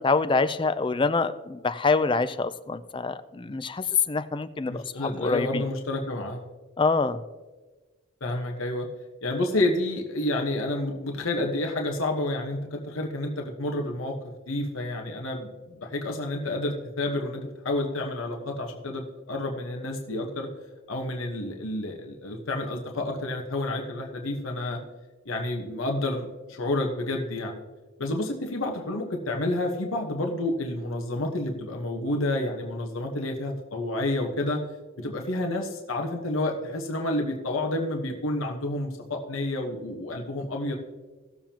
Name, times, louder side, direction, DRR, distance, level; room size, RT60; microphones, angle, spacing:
voice 1, 0.0-5.6 6.8-7.2, left 4 dB, 25° left, 12 dB, 0.4 m, -25 dB
voice 2, 4.6-6.4 8.2-8.9 9.2-14.1 14.5-20.5 20.9-24.8 25.2-27.6 28.0-34.6 35.0-40.8, left 1 dB, 85° left, 1 dB, 1.2 m, -29 dB
18.0 x 7.3 x 2.9 m, 1.3 s
head